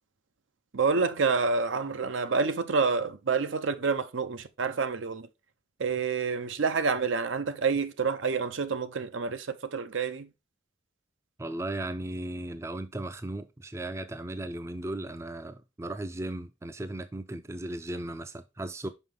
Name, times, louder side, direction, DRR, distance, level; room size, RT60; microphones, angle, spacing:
voice 1, 0.7-5.3 5.8-10.3, right 4 dB, 75° right, 0.7 m, -28 dB
voice 2, 11.4-18.9, right 1 dB, 15° right, 0.4 m, -36 dB
5.6 x 5.5 x 3.8 m
head